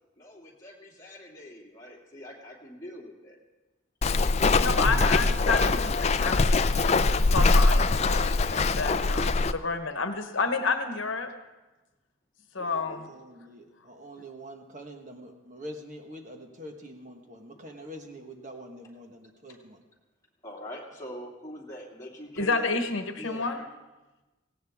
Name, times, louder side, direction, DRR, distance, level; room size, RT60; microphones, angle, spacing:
voice 1, 0.2-3.4 4.3-4.6 12.6-13.0 20.4-22.7, equal, 15° left, -3 dB, 2.5 m, -43 dB
Walk footsteps, 4.0-9.5, left 3 dB, 30° left, 0.4 m, -23 dB
voice 2, 4.6-7.0 7.3-11.3 12.5-13.1 22.4-23.6, left 4 dB, 65° left, 7 dB, 1.2 m, -30 dB
voice 3, 13.0-19.8 23.2-23.5, equal, 35° right, 3 dB, 1.4 m, -44 dB
18.0 x 17.0 x 3.6 m, 1.1 s
head